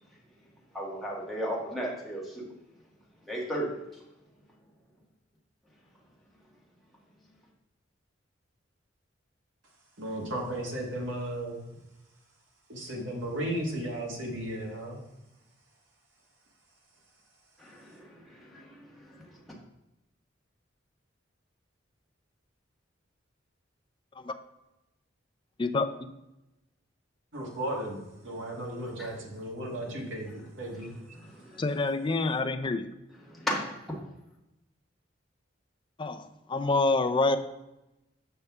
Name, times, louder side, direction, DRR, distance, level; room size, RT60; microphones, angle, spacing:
voice 1, 0.7-2.5 3.2-3.7 17.6-19.4 31.3-31.6 33.3-33.7, equal, ahead, -4 dB, 1.5 m, -35 dB
voice 2, 10.0-11.6 12.7-15.0 27.3-30.9, right 1 dB, 70° right, 0 dB, 1.6 m, -35 dB
voice 3, 25.6-26.1 31.6-32.9 36.0-37.4, left 3 dB, 25° left, 8 dB, 0.4 m, -27 dB
6.9 x 5.5 x 3.5 m, 0.93 s
head